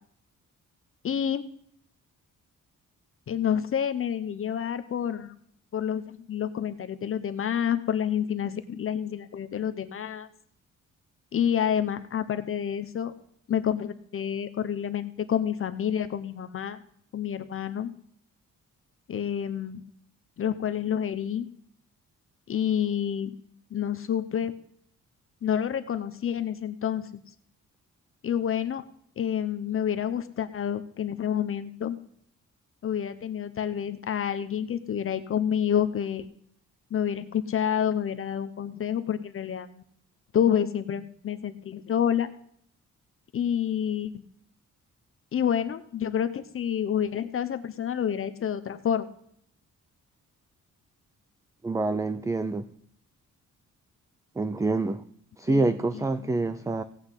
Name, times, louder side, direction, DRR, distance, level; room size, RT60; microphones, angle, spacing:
voice 1, 1.0-1.5 3.3-5.4 5.7-10.3 11.3-13.1 13.5-16.8 17.1-17.9 19.1-19.8 20.4-21.5 22.5-23.4 23.7-24.5 25.4-27.3 28.2-28.8 29.2-32.0 32.8-36.3 36.9-39.8 40.3-42.3 43.3-44.2 45.3-49.1 55.5-56.3, left 9 dB, 45° left, 10 dB, 0.7 m, -28 dB
voice 2, 51.6-52.7 54.4-55.0 55.4-56.8, right 2 dB, 10° right, 12 dB, 0.4 m, -26 dB
17.0 x 5.8 x 8.2 m, 0.65 s
wide cardioid pair, 180°, 30 cm